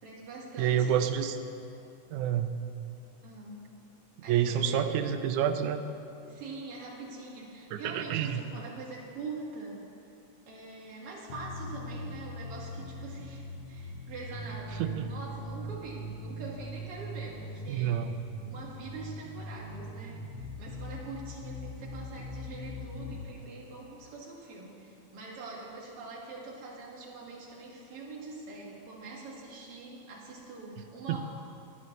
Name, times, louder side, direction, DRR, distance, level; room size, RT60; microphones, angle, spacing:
voice 1, 0.0-1.0 3.2-3.6 4.2-5.2 6.3-9.8 10.5-18.0 18.4-31.2, right 3 dB, 50° right, -4 dB, 2.6 m, -44 dB
voice 2, 0.6-1.4 2.1-2.6 4.3-5.8 7.7-8.4 14.8-15.1 17.7-18.1 31.1-31.2, right 9 dB, 80° right, 8 dB, 1.9 m, -28 dB
sound 1, 11.3-23.2, equal, 50° left, 1.7 m, -41 dB
22.0 x 9.5 x 3.2 m, 2.6 s
omnidirectional pair, 3.7 m